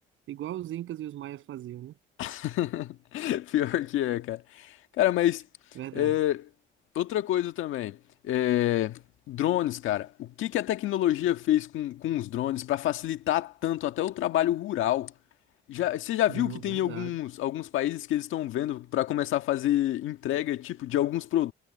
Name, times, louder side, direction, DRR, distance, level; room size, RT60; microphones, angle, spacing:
voice 1, 0.3-1.9 5.8-6.1 16.3-17.1, right 13 dB, 80° right, 7.7 m, -38 dB
voice 2, 2.2-5.4 5.9-6.5 6.9-8.0 8.2-15.1 15.7-21.5, left 13 dB, 85° left, 1.7 m, -28 dB
cardioid pair, 90°, 20 cm